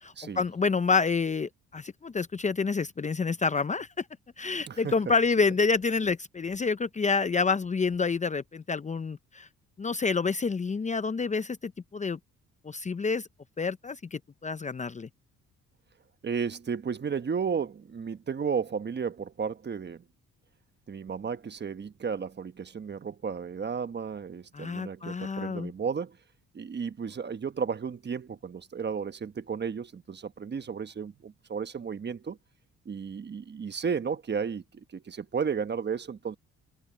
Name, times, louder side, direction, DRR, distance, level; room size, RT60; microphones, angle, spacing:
voice 1, 0.0-4.0 4.4-9.5 9.8-12.2 12.6-13.3 13.6-15.1 24.5-25.7, left 4 dB, 25° left, 0.6 m, -28 dB
voice 2, 16.2-20.0 20.9-26.2 26.5-32.4 32.8-36.4, right 6 dB, 35° right, 1.2 m, -33 dB
cardioid pair, 90°, 30 cm